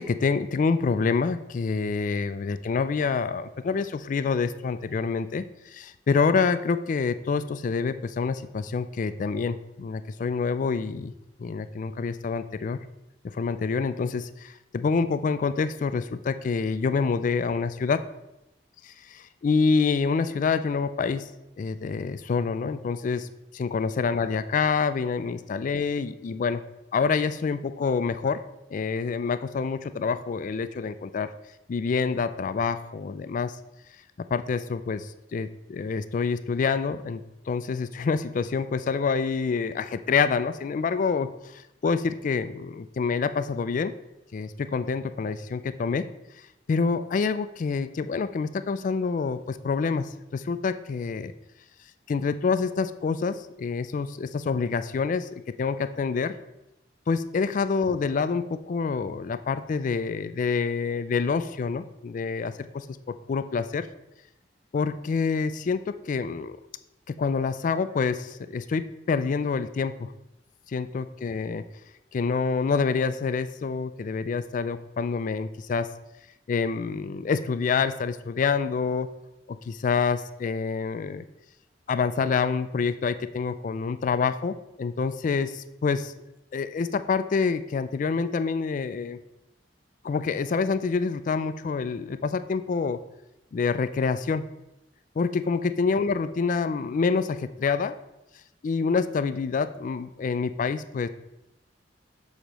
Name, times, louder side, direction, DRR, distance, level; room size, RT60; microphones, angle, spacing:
voice 1, 0.0-11.1 11.4-12.8 13.3-18.1 18.8-21.3 21.6-23.3 23.5-26.6 26.9-28.4 28.7-31.3 31.7-33.6 34.3-43.9 44.3-46.1 46.7-51.3 52.1-56.3 57.1-63.9 64.7-66.6 67.2-70.1 70.7-71.6 72.1-75.9 76.5-79.1 79.5-81.3 81.9-86.1 86.5-89.2 90.0-93.0 93.5-94.5 95.2-98.0 98.6-101.1, left 5 dB, 45° left, 12 dB, 0.3 m, -27 dB
6.4 x 3.0 x 5.1 m, 0.90 s
head